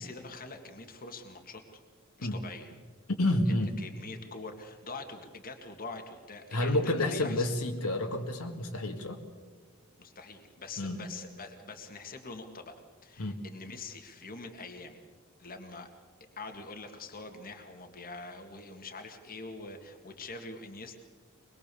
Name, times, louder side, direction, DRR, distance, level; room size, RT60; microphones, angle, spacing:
voice 1, 0.0-1.6 2.2-2.7 3.8-7.5 10.0-12.8 13.0-15.0 15.4-15.9 16.4-21.0, left 3 dB, 40° left, 4 dB, 2.0 m, -44 dB
voice 2, 3.1-3.8 6.5-9.2 10.8-11.0 13.2-13.4, left 1 dB, 75° left, 3 dB, 2.1 m, -29 dB
23.5 x 21.5 x 7.0 m, 1.4 s
head